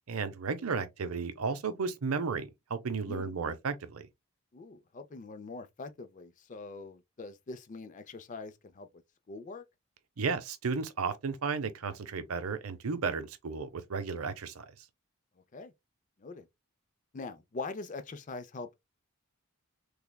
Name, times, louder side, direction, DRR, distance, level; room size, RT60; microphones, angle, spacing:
voice 1, 0.1-4.1 10.2-14.7, right 5 dB, 85° right, 0.7 m, -34 dB
voice 2, 4.5-8.9 9.3-9.6 15.5-15.7 16.2-16.5 17.1-18.8, left 3 dB, 35° left, 0.4 m, -43 dB
3.4 x 3.3 x 2.2 m
head